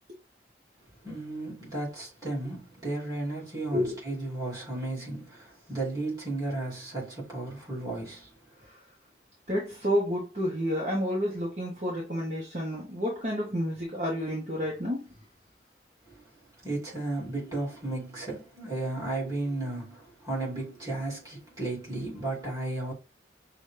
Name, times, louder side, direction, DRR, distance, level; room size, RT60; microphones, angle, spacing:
voice 1, 1.0-8.3 16.1-16.2 16.6-22.9, right 2 dB, 20° right, 2.9 m, -34 dB
voice 2, 9.5-15.1, equal, 40° right, 1.2 m, -30 dB
6.0 x 2.4 x 3.3 m
head